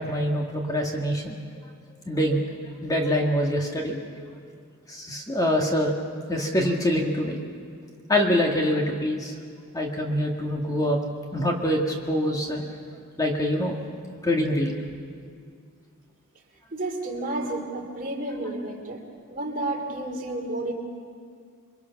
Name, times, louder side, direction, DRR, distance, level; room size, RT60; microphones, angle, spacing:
voice 1, 0.0-1.4 2.1-2.5 2.8-4.3 4.9-6.0 6.3-7.4 8.1-9.3 9.7-11.0 11.3-12.7 13.2-13.8 14.2-14.8, equal, 15° left, 0 dB, 1.9 m, -25 dB
voice 2, 16.7-19.0 19.3-20.7, right 2 dB, 40° right, 2 dB, 2.8 m, -31 dB
28.0 x 23.0 x 6.0 m, 2.2 s
head